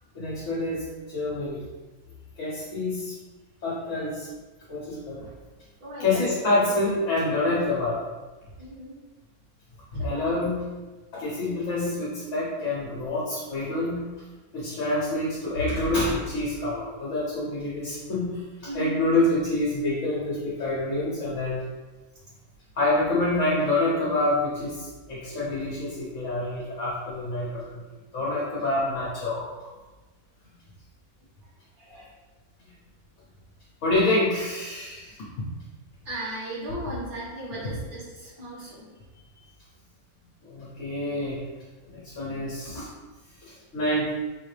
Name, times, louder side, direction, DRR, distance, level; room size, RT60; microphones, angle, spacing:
voice 1, 0.1-0.8 1.1-1.6 2.4-3.1 3.6-4.3 4.7-5.3 6.0-8.0 9.9-10.6 11.1-14.0 14.5-18.4 18.7-21.6 22.7-27.8 28.1-29.5 33.8-35.2 37.6-37.7 40.5-41.4 41.8-42.9 43.4-44.1, left 2 dB, 60° left, -7 dB, 1.3 m, -27 dB
voice 2, 5.8-6.2 8.6-9.0 10.0-10.4 18.7-19.1 31.8-32.1 36.1-38.9 42.2-42.5, right 1 dB, 85° right, -8 dB, 2.1 m, -36 dB
5.2 x 2.8 x 3.2 m, 1.2 s
omnidirectional pair, 1.5 m